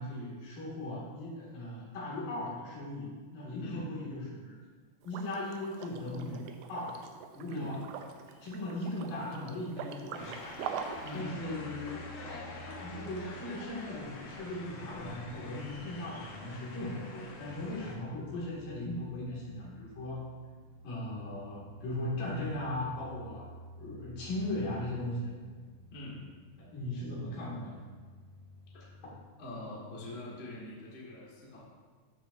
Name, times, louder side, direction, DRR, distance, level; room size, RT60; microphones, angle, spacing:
voice 1, 0.0-4.6 5.0-6.4 6.7-7.0 7.3-7.8 8.4-10.6 11.1-12.1 12.8-20.2 20.8-23.5 23.8-25.3 26.6-27.8, left 1 dB, 70° left, -5 dB, 3.7 m, -38 dB
voice 2, 3.6-3.9 7.5-7.7 11.0-11.3 25.9-26.3 28.7-28.9 29.4-31.6, left 1 dB, 50° left, -5 dB, 0.7 m, -43 dB
Liquid, 5.0-11.2, right 7 dB, 85° right, 2.4 m, -43 dB
sound 1, 10.1-17.9, left 2 dB, 90° left, 3.3 m, -46 dB
sound 2, 10.9-29.2, equal, 45° right, 3.0 m, -52 dB
13.5 x 6.2 x 2.6 m, 1.5 s
omnidirectional pair, 4.1 m